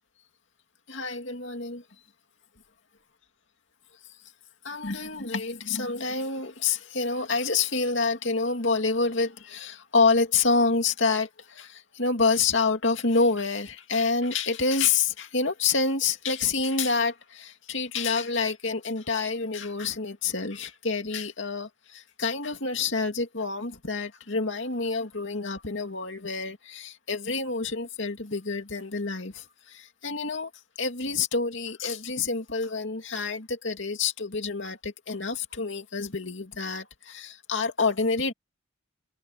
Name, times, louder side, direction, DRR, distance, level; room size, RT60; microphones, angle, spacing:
voice 1, 0.9-1.8 4.6-30.5 30.8-38.3, left 4 dB, 60° left, 2.6 m, -27 dB
head